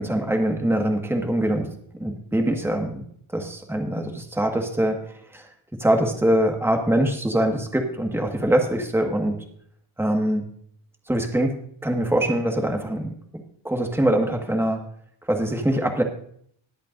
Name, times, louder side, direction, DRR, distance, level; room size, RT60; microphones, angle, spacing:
voice 1, 0.0-1.7 2.0-3.0 3.3-5.0 5.3-5.5 5.8-9.4 10.0-10.5 11.1-11.5 11.8-14.8 15.3-16.0, right 1 dB, 5° right, 3 dB, 1.6 m, -23 dB
21.0 x 8.2 x 2.6 m, 0.65 s
cardioid pair, 115°, 48 cm